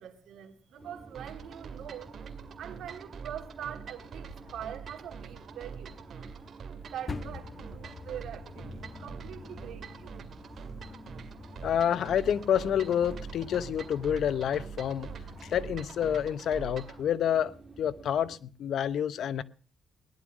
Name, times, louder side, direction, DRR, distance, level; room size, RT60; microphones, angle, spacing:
voice 1, 0.0-2.1 2.6-6.0 6.9-10.2, right 10 dB, 80° right, 2.4 m, -43 dB
sound 1, 0.8-18.4, right 3 dB, 15° right, 2.4 m, -52 dB
sound 2, 1.1-17.0, right 6 dB, 55° right, 2.2 m, -45 dB
sound 3, 7.1-15.9, left 4 dB, 35° left, 0.7 m, -46 dB
voice 2, 11.6-15.1 15.5-17.5 17.8-19.4, left 9 dB, 70° left, 0.8 m, -28 dB
17.5 x 11.5 x 6.2 m
cardioid pair, 110°, 0 cm